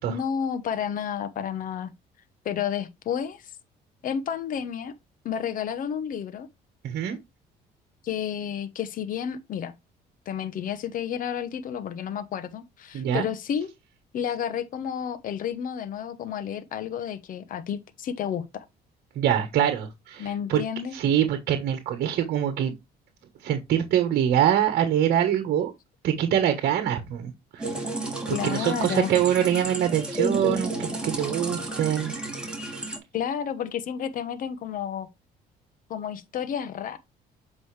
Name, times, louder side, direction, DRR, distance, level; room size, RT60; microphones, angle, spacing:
voice 1, 0.1-1.9 2.4-3.5 4.0-4.9 5.2-6.5 8.0-9.7 10.3-13.7 14.1-18.6 20.2-21.0 28.3-29.1 33.1-35.1 35.9-37.0, left 8 dB, 55° left, 0.9 m, -31 dB
voice 2, 6.8-7.2 12.9-13.3 19.1-20.6 20.9-22.7 23.4-25.7 26.0-27.7 28.3-32.1, right 10 dB, 65° right, 1.3 m, -24 dB
sound 1, 27.6-33.0, right 2 dB, 5° right, 2.9 m, -31 dB
7.9 x 5.1 x 3.3 m
cardioid pair, 110°, 17 cm